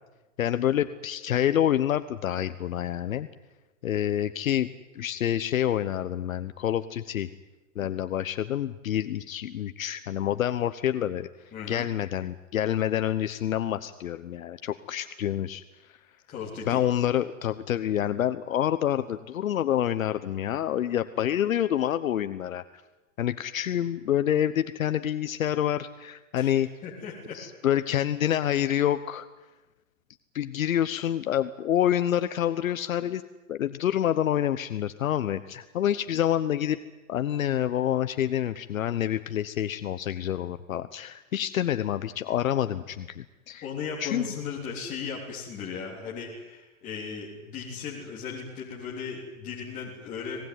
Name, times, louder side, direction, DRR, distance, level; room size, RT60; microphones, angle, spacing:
voice 1, 0.4-3.3 3.8-4.7 4.9-7.3 7.7-11.3 11.7-16.0 16.7-22.6 23.2-26.7 27.3-29.3 30.3-33.2 33.5-36.8 37.1-43.7 44.0-44.2, left 11 dB, 70° left, 11 dB, 1.2 m, -27 dB
voice 2, 11.5-11.9 16.3-16.8 26.4-27.4 43.6-50.5, left 6 dB, 20° left, -4 dB, 3.4 m, -37 dB
26.5 x 19.0 x 9.6 m, 1.1 s
hypercardioid pair, 160°, 42 cm